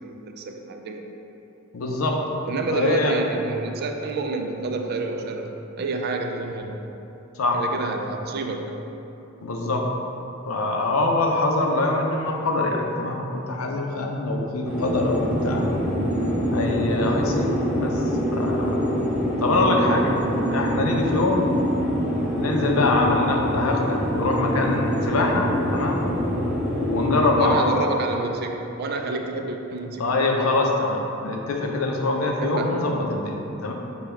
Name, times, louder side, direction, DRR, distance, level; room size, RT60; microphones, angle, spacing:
voice 1, 0.0-1.0 2.5-6.8 7.5-8.7 27.4-30.2 32.2-32.8, right 3 dB, 50° right, 3 dB, 0.4 m, -28 dB
voice 2, 1.7-2.2 2.7-3.2 7.4-7.6 9.4-9.8 10.5-15.7 16.5-18.0 18.3-19.0 19.4-20.1 20.5-21.5 22.4-26.1 26.9-27.7 30.0-33.7, left 2 dB, 80° left, 1 dB, 0.5 m, -24 dB
sound 1, 14.6-27.3, equal, 5° right, 1.3 m, -25 dB
5.2 x 2.3 x 4.4 m, 3.0 s
head